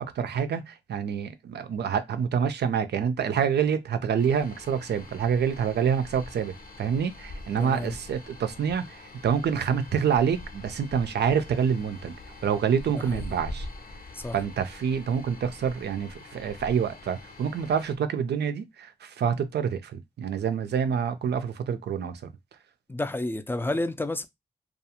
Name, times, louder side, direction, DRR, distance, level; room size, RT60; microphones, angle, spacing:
voice 1, 0.0-12.1 12.4-13.7 14.3-22.3, right 7 dB, 75° right, 0.4 m, -27 dB
sound 1, 4.2-18.0, left 2 dB, 55° left, 0.7 m, -44 dB
voice 2, 7.6-7.9 13.1-13.2 14.1-14.4 22.9-24.3, left 1 dB, 10° left, 0.4 m, -30 dB
2.3 x 2.3 x 2.8 m
cardioid pair, 45°, 17 cm